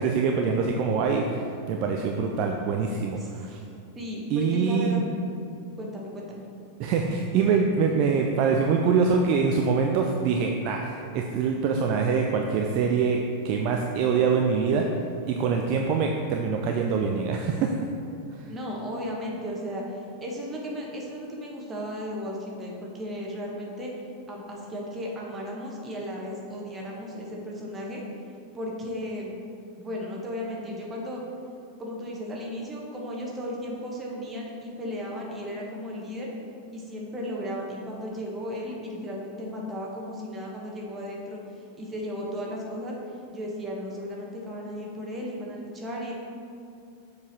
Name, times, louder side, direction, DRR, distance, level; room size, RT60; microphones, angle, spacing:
voice 1, 0.0-3.6 4.3-5.0 6.8-14.9 15.3-17.7, right 5 dB, 40° right, 2 dB, 0.4 m, -24 dB
voice 2, 3.9-5.1 5.8-6.4 18.5-23.9 24.3-28.0 28.5-29.3 29.8-31.2 31.8-36.3 36.7-42.9 43.3-46.1, equal, 20° right, -2 dB, 1.4 m, -35 dB
7.1 x 4.8 x 4.2 m, 2.4 s
figure-of-eight pair, 90°, 0 cm